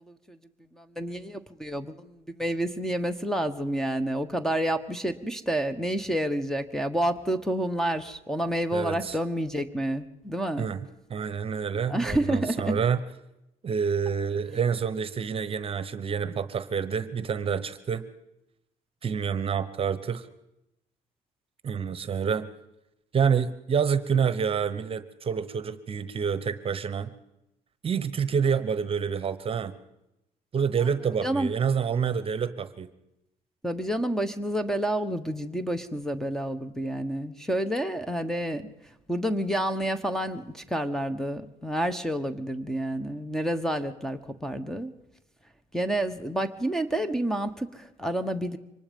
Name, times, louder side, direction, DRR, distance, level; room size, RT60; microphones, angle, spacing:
voice 1, 0.8-10.7 11.9-12.8 31.2-31.5 33.6-38.7 39.1-44.9 45.7-48.6, right 1 dB, 5° left, 12 dB, 1.3 m, -29 dB
voice 2, 8.7-9.2 10.6-13.0 13.6-18.0 19.0-20.3 21.6-22.5 23.1-27.1 27.8-29.7 30.5-32.9, right 6 dB, 40° right, 13 dB, 1.1 m, -28 dB
24.5 x 19.5 x 5.4 m, 0.88 s
cardioid pair, 100°, 15 cm